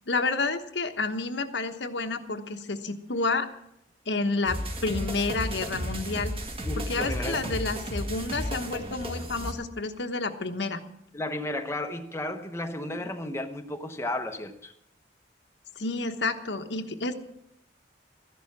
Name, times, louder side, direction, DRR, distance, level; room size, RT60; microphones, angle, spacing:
voice 1, 0.1-3.5 4.1-6.3 6.8-10.8 15.8-17.1, left 3 dB, 75° left, 7 dB, 1.2 m, -30 dB
sound 1, 4.5-9.5, equal, 30° right, 1.9 m, -33 dB
voice 2, 6.6-7.5 11.1-14.7, left 1 dB, 15° left, 5 dB, 0.9 m, -33 dB
14.0 x 11.0 x 7.3 m, 0.74 s
head